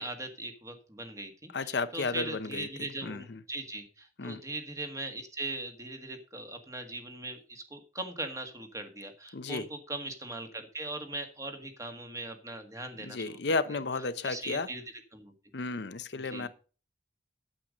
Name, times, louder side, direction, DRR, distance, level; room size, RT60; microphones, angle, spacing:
voice 1, 0.0-13.4 13.7-13.8 14.2-14.8 15.1-15.3 16.1-16.5, right 2 dB, 20° right, 6 dB, 1.6 m, -40 dB
voice 2, 1.5-3.4 4.2-4.4 9.3-9.7 13.0-14.7 15.5-16.5, left 3 dB, 65° left, 12 dB, 0.7 m, -33 dB
8.9 x 7.9 x 5.2 m, 0.36 s
head